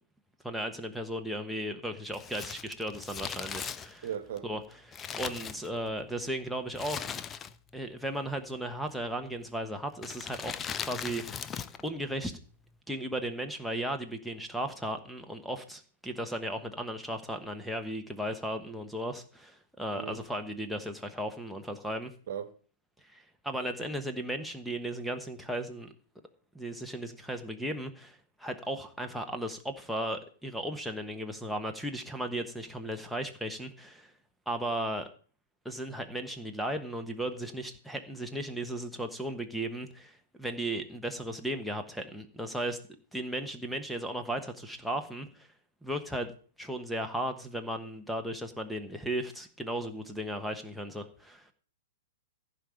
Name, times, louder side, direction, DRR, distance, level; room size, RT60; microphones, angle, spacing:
voice 1, 0.4-4.1 4.4-7.1 7.7-11.5 11.8-12.4 12.9-22.1 23.0-25.9 26.5-34.1 34.5-35.1 35.6-42.8 43.1-45.5 45.8-46.3 46.6-51.5, right 1 dB, ahead, 1.2 m, -36 dB
Crumpling crinkling, 2.1-6.1 6.7-7.8 8.0-8.1 8.9-9.3 10.0-11.9 12.1-12.2, left 7 dB, 20° left, 0.6 m, -39 dB
voice 2, 4.0-4.4 19.9-20.2 22.3-22.5, right 9 dB, 55° right, 1.3 m, -36 dB
15.0 x 5.1 x 7.0 m
figure-of-eight pair, 110°, 0 cm